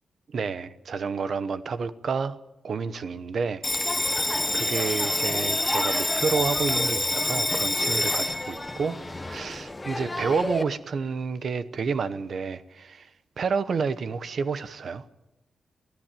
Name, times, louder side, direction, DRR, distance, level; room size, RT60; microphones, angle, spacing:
voice 1, 0.3-2.4 2.6-3.6 3.9-9.0 9.2-13.1 13.4-15.1, right 5 dB, 50° right, 0.9 m, -30 dB
Bell, 3.6-10.6, left 2 dB, 10° left, 1.1 m, -27 dB
23.5 x 15.5 x 9.0 m
wide cardioid pair, 175°, 0 cm